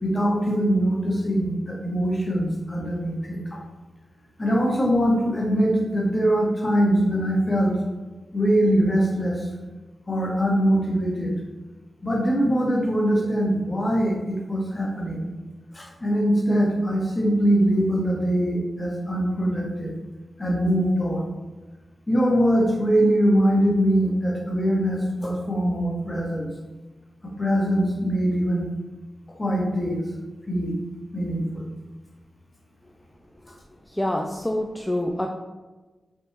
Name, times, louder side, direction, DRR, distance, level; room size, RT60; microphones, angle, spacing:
voice 1, 0.0-3.6 4.4-7.7 8.3-9.5 10.1-11.3 12.0-15.3 15.7-19.9 20.4-21.3 22.1-26.5 27.2-28.7 29.4-30.0 30.5-30.8 31.1-31.7, equal, 35° left, -2 dB, 1.0 m, -22 dB
voice 2, 33.9-35.3, left 1 dB, 10° left, 1 dB, 0.3 m, -26 dB
3.6 x 2.6 x 2.6 m, 1.2 s
cardioid pair, 40°, 0 cm